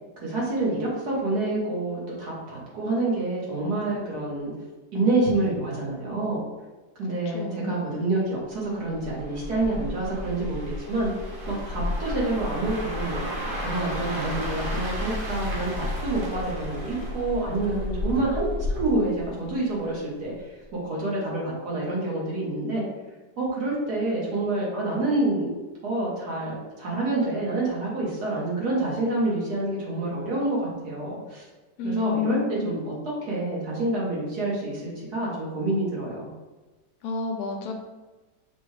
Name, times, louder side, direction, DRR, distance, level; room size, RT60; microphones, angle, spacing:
voice 1, 0.2-4.5 4.9-6.5 7.0-11.1 11.5-18.5 18.7-22.8 23.4-25.5 25.8-31.5 31.8-33.0 33.3-36.3, right 2 dB, 70° right, -5 dB, 1.8 m, -27 dB
voice 2, 7.3-7.7 31.8-32.7 37.0-37.7, left 3 dB, 75° left, 3 dB, 1.1 m, -30 dB
sound 1, 8.9-20.0 20.3-20.6, left 1 dB, 45° right, 0.8 m, -32 dB
5.9 x 2.4 x 3.3 m, 1.2 s
omnidirectional pair, 1.8 m